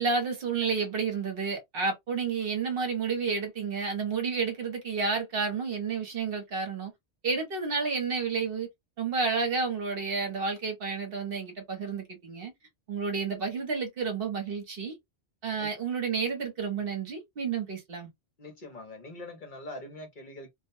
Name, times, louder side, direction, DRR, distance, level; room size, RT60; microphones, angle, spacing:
voice 1, 0.0-6.9 7.2-8.7 9.0-12.5 12.9-14.9 15.4-18.1, right 5 dB, 60° right, 1.0 m, -30 dB
voice 2, 18.4-20.5, left 2 dB, 50° left, 0.8 m, -43 dB
2.3 x 2.1 x 2.5 m
omnidirectional pair, 1.1 m